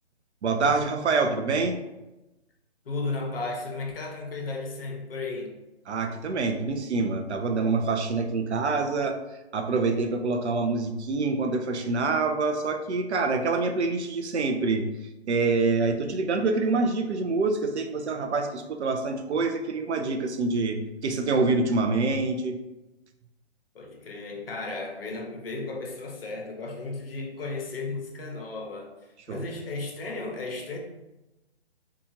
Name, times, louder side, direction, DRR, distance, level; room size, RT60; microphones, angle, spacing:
voice 1, 0.4-1.8 5.9-9.2 9.5-14.9 15.3-22.6 29.3-29.5, right 3 dB, 80° right, 5 dB, 0.5 m, -26 dB
voice 2, 2.8-5.6 23.7-28.9 29.3-30.8, left 3 dB, 60° left, 0 dB, 0.8 m, -34 dB
2.8 x 2.3 x 2.7 m, 1.0 s
hypercardioid pair, 150°, 33 cm